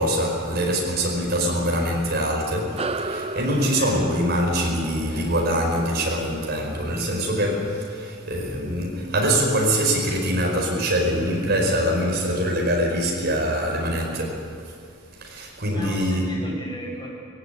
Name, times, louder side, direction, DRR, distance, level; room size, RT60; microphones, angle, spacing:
voice 1, 0.0-14.5 15.2-16.3, equal, 50° right, 0 dB, 5.0 m, -24 dB
sound 1, 2.8-7.6, right 3 dB, 30° right, 0.6 m, -35 dB
voice 2, 15.4-17.1, equal, 20° left, -2 dB, 5.2 m, -35 dB
19.5 x 17.0 x 9.2 m, 2.3 s
head